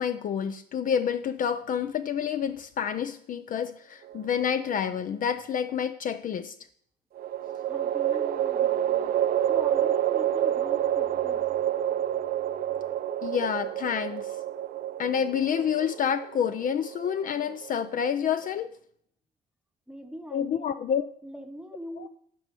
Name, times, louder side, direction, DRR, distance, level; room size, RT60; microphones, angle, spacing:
voice 1, 0.0-6.5 13.2-14.4 15.0-18.7 20.3-21.1 22.0-22.1, left 8 dB, 40° left, 11 dB, 0.5 m, -28 dB
sound 1, 4.1-4.9 7.2-18.5, right 11 dB, 45° right, 0.6 m, -28 dB
voice 2, 7.7-9.1 9.5-12.5 19.9-20.7 21.2-22.1, equal, 5° right, 7 dB, 1.0 m, -42 dB
12.0 x 4.3 x 6.9 m, 0.66 s
cardioid pair, 115°, 21 cm